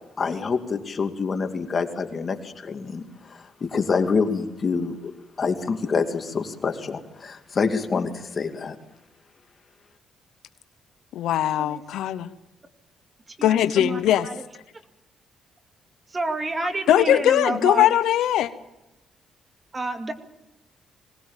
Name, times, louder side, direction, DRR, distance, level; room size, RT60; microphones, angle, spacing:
voice 1, 0.2-5.1 5.4-8.8, left 5 dB, 40° left, 6 dB, 2.4 m, -26 dB
voice 2, 11.1-12.3 13.4-14.3 16.9-18.5, left 11 dB, 80° left, 12 dB, 0.9 m, -20 dB
voice 3, 13.3-14.4 16.1-17.9 19.7-20.1, right 2 dB, 25° right, 7 dB, 2.3 m, -29 dB
22.0 x 19.0 x 7.3 m, 0.91 s
cardioid pair, 90°, 0 cm